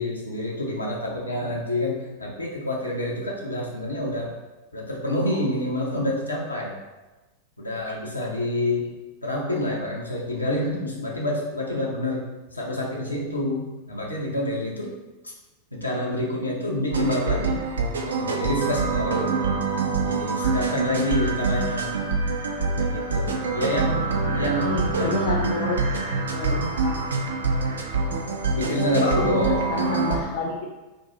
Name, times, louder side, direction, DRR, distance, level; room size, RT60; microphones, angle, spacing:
voice 1, 0.0-4.3 4.7-6.8 7.6-8.9 9.2-12.2 12.5-14.9 15.2-15.3 15.7-17.6 18.1-19.4 20.0-21.9 22.8-24.0 24.4-25.2 28.5-29.7, left 1 dB, 80° left, -2 dB, 0.7 m, -27 dB
sound 1, 16.9-30.2, right 4 dB, 70° right, 0.4 m, -25 dB
voice 2, 24.6-25.8 26.3-27.1 29.3-30.7, left 4 dB, 50° left, 0 dB, 0.3 m, -29 dB
2.8 x 2.6 x 3.7 m, 1.1 s
figure-of-eight pair, 90°, 0 cm